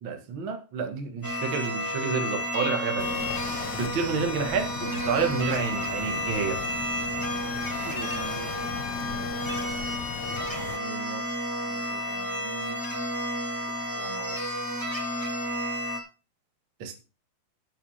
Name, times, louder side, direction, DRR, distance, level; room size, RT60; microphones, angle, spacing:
voice 1, 0.0-3.1 3.7-6.6 16.8-16.9, right 5 dB, 60° right, 1.2 m, -29 dB
sound 1, 1.2-16.0, equal, 10° left, 0.9 m, -31 dB
sound 2, 3.0-10.8, left 13 dB, 90° left, 3.3 m, -38 dB
voice 2, 7.6-9.3 10.3-11.3 11.6-12.8 14.0-14.7, right 9 dB, 85° right, 3.8 m, -43 dB
12.0 x 6.7 x 5.8 m
omnidirectional pair, 5.6 m